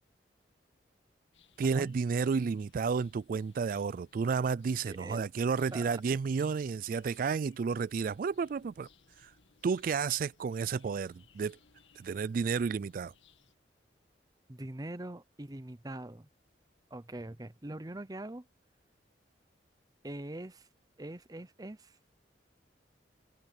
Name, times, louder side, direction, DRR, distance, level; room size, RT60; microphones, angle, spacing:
sound 1, 1.3-13.5, left 5 dB, 85° left, 2.0 m, -65 dB
voice 1, 1.6-8.9 9.2-9.3 9.6-11.6 12.0-13.1, right 5 dB, 50° right, 0.3 m, -31 dB
voice 2, 4.8-5.2 5.7-6.0 14.5-16.3 16.9-18.5 20.0-20.7 21.0-22.0, right 1 dB, 20° right, 0.7 m, -43 dB
open air
head